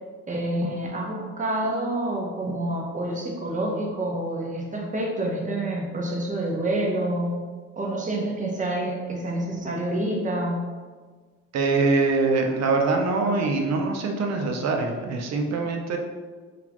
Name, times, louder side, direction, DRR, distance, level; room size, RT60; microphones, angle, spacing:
voice 1, 0.3-7.5 7.8-10.7, right 1 dB, 25° right, -1 dB, 0.8 m, -28 dB
voice 2, 11.5-16.0, right 3 dB, 60° right, 2 dB, 0.6 m, -23 dB
3.9 x 2.4 x 2.9 m, 1.5 s
cardioid pair, 90°, 30 cm